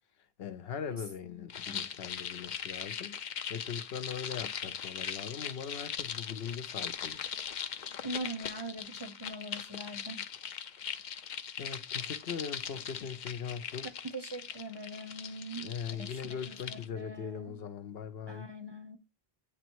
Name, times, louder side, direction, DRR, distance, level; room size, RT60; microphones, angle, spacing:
voice 1, 0.4-7.2 11.6-13.9 15.6-18.5, left 7 dB, 75° left, 1.0 m, -40 dB
voice 2, 0.9-1.9 8.0-10.2 14.0-17.6 18.3-19.0, right 1 dB, 30° right, 0.7 m, -43 dB
sound 1, 1.5-16.9, left 8 dB, 55° left, 0.6 m, -40 dB
8.4 x 3.1 x 4.6 m
omnidirectional pair, 1.0 m